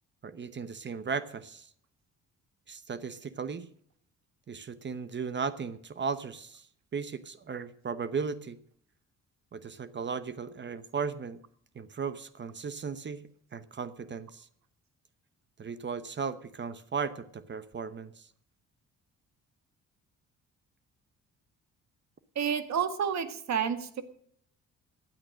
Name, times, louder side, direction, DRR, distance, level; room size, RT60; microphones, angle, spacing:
voice 1, 0.2-1.7 2.7-3.7 4.5-6.7 6.9-8.6 9.5-11.4 11.7-13.2 13.5-14.5 15.6-18.3, right 5 dB, 35° right, 14 dB, 0.9 m, -36 dB
voice 2, 22.4-24.0, right 7 dB, 65° right, 11 dB, 1.8 m, -30 dB
15.5 x 8.9 x 6.4 m, 0.63 s
cardioid pair, 90°, 30 cm